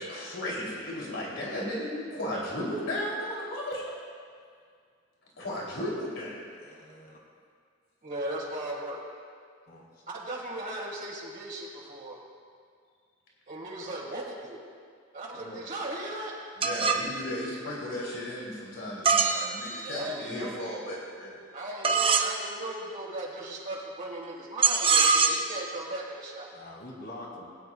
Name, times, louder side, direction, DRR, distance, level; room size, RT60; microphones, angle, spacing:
voice 1, 0.0-3.9 5.4-6.5 16.6-21.4, left 1 dB, 80° left, -5 dB, 2.9 m, -35 dB
voice 2, 6.5-7.2 9.7-10.0 15.3-15.6 26.5-27.5, left 1 dB, 55° left, -2 dB, 2.1 m, -45 dB
voice 3, 8.0-9.0 10.1-12.2 13.5-14.7 15.1-16.3 19.8-20.6 21.5-26.5, right 1 dB, 45° right, -3 dB, 1.8 m, -37 dB
sound 1, 16.6-17.1 19.0-20.0 21.8-22.3 24.6-25.6, right 5 dB, 30° right, 0.6 m, -23 dB
19.5 x 9.3 x 2.3 m, 2.1 s
head